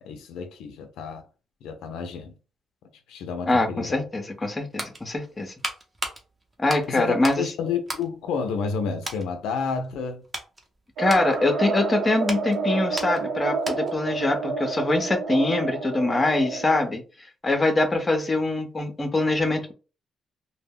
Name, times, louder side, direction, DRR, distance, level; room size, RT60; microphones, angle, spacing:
voice 1, 0.0-1.2 1.6-2.3 3.1-4.0 6.9-10.2, left 5 dB, 85° left, 0.4 m, -30 dB
voice 2, 3.5-5.5 6.6-7.5 11.0-17.0 17.4-19.7, left 2 dB, 25° left, 0.6 m, -23 dB
sound 1, 4.3-7.5 7.8-8.7 9.0-9.3 9.8-14.1 14.4-14.5, right 1 dB, 20° right, 0.7 m, -36 dB
sound 2, 11.0-16.9, right 4 dB, 90° right, 0.4 m, -29 dB
2.1 x 2.1 x 3.5 m
cardioid pair, 90°, 0 cm